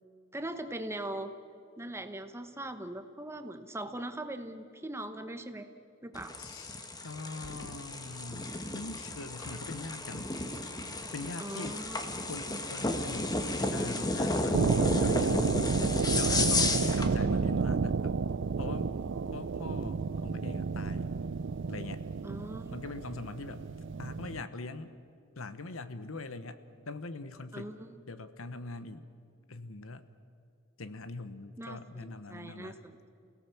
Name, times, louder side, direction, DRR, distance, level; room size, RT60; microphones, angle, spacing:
voice 1, 0.3-1.3 1.8-5.7 6.0-6.3 11.4-12.0 22.2-22.8 27.5-28.0 31.6-33.1, right 1 dB, 15° right, 8 dB, 1.2 m, -40 dB
sound 1, 6.1-17.1, left 2 dB, 20° left, 1.4 m, -33 dB
voice 2, 6.4-10.3 11.1-11.8 12.3-15.5 16.1-18.2 18.6-18.9 19.3-21.1 21.7-22.0 22.7-23.6 24.0-24.9 25.4-26.6 26.9-27.8 28.1-29.1 29.5-30.0 30.8-32.8, left 3 dB, 75° left, 12 dB, 1.1 m, -42 dB
sound 2, 14.5-24.4, right 4 dB, 65° right, 0.5 m, -31 dB
29.0 x 17.5 x 7.0 m, 2.4 s
head